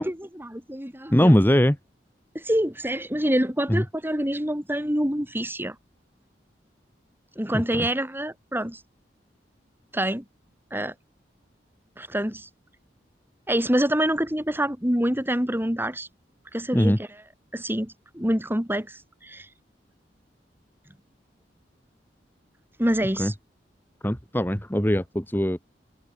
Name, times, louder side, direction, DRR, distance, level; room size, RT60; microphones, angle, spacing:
voice 1, 0.0-1.4 2.3-5.8 7.4-8.8 9.9-10.2 10.7-10.9 12.0-12.5 13.5-16.1 16.5-17.1 17.5-19.5 22.8-23.3, right 1 dB, 10° right, 6.1 m, -26 dB
voice 2, 1.1-1.8 3.7-3.8 7.7-7.9 16.7-17.0 23.2-23.3 24.0-25.7, equal, 10° left, 2.2 m, -21 dB
open air
head